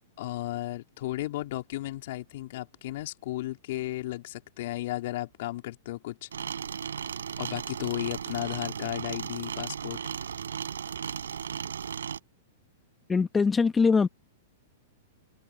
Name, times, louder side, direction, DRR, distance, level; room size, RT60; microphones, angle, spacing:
voice 1, 0.2-6.3 7.4-10.0, left 16 dB, 60° left, 3.3 m, -34 dB
sound 1, 6.3-12.2, right 7 dB, 85° right, 5.3 m, -35 dB
voice 2, 13.1-14.1, left 5 dB, 15° left, 1.4 m, -22 dB
open air
hypercardioid pair, 120°, 0 cm